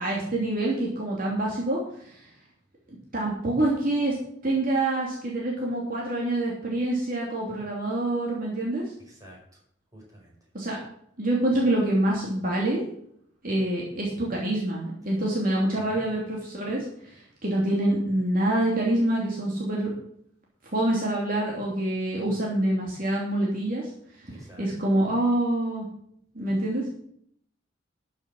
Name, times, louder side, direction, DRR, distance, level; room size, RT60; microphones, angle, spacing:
voice 1, 0.0-2.2 3.1-4.2 4.4-8.8 10.5-10.8 11.2-12.8 13.4-19.9 20.7-23.9 24.2-24.3 24.6-25.9 26.3-26.9, right 1 dB, 50° right, -3 dB, 2.9 m, -26 dB
voice 2, 9.1-9.4 9.9-10.3 15.8-16.0 24.3-24.7, right 1 dB, 20° right, -2 dB, 5.2 m, -48 dB
12.5 x 7.1 x 6.3 m, 0.67 s
head